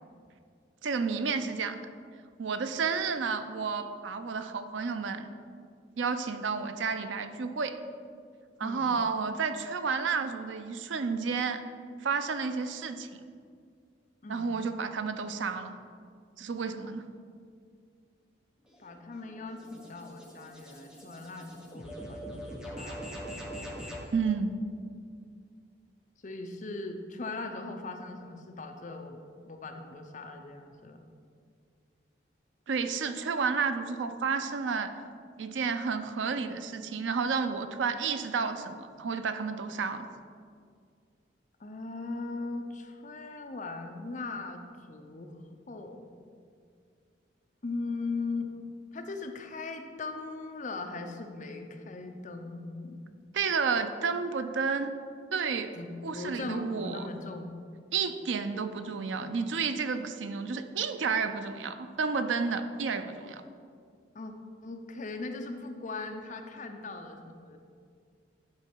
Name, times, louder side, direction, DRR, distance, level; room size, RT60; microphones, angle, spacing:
voice 1, 0.8-1.8 2.4-5.3 6.0-7.8 8.6-11.6 12.0-13.2 14.3-15.7 16.4-17.0 24.1-24.6 32.7-34.9 35.4-40.1 53.3-54.9 55.3-55.7 56.0-57.1 57.9-63.4, right 5 dB, 85° right, 9 dB, 0.5 m, -31 dB
voice 2, 8.6-9.0 14.2-14.6 18.8-23.1 26.2-29.2 29.4-31.0 41.6-45.3 45.7-46.0 47.6-48.6 48.9-53.0 55.7-57.5 64.1-64.3 64.6-67.6, left 3 dB, 40° left, 5 dB, 0.6 m, -39 dB
sound 1, 18.7-24.1, equal, 5° right, 0.9 m, -43 dB
10.5 x 4.0 x 4.5 m, 2.2 s
head